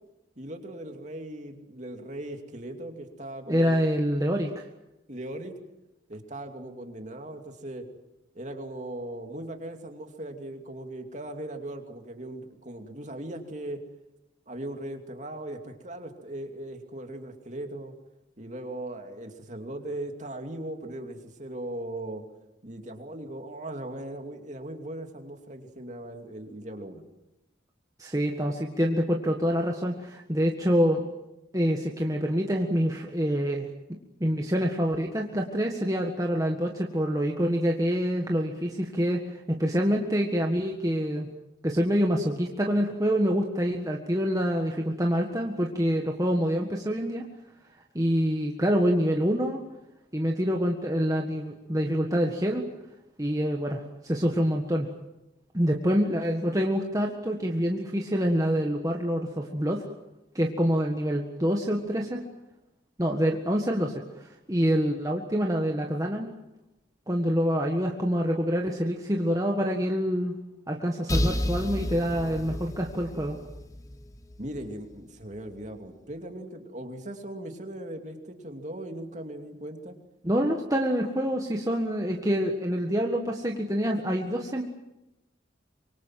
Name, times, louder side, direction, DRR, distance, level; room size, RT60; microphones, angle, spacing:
voice 1, 0.4-3.7 5.1-5.6 6.1-7.9 8.3-13.8 14.5-17.9 18.4-22.2 22.6-27.0 74.4-79.9, right 1 dB, 40° right, 4 dB, 2.7 m, -39 dB
voice 2, 3.5-4.6 28.0-31.0 31.5-33.7 34.2-41.3 41.6-47.2 47.9-49.6 50.1-52.6 53.2-54.9 55.5-59.8 60.3-62.2 63.0-66.3 67.1-70.4 70.7-73.4 80.2-84.6, equal, 20° right, 1 dB, 1.7 m, -26 dB
sound 1, 71.1-74.8, left 1 dB, 15° left, 1.2 m, -31 dB
25.5 x 23.5 x 7.6 m, 0.94 s
head